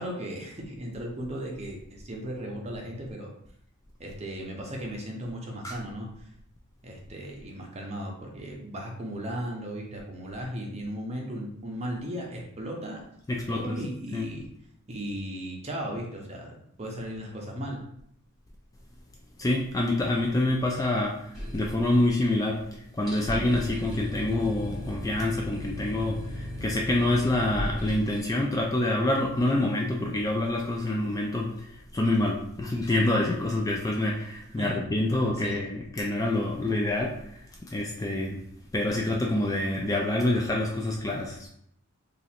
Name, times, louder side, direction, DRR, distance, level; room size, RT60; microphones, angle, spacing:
voice 1, 0.0-3.3 4.0-6.3 6.8-13.0 13.5-14.5 14.9-17.8 34.6-34.8 35.4-35.7, equal, 30° right, -1 dB, 0.7 m, -36 dB
voice 2, 13.3-13.7 14.1-14.3 19.4-38.4 38.7-41.5, left 1 dB, 15° left, -1 dB, 0.3 m, -27 dB
sound 1, 21.3-22.4 22.6-22.7 23.0-28.2, equal, ahead, 1.5 m, -36 dB
2.9 x 2.5 x 4.2 m, 0.70 s
head